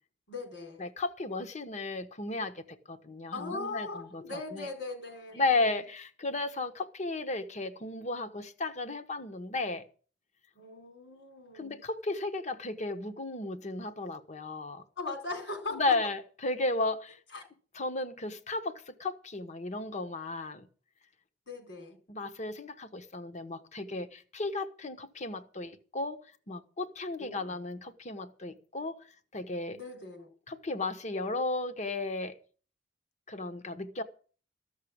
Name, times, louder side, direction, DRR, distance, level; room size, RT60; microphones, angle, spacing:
voice 1, 0.3-0.8 3.3-5.8 10.5-11.8 15.0-16.0 17.3-17.5 21.5-22.0 27.2-27.5 29.7-30.3, left 3 dB, 75° left, 4.6 m, -40 dB
voice 2, 0.8-4.7 5.3-9.8 11.5-14.8 15.7-17.2 17.7-20.7 22.1-26.2 26.5-29.1 29.3-29.8 30.5-32.4 33.3-34.0, left 2 dB, 40° left, 1.1 m, -34 dB
14.0 x 6.6 x 8.6 m
head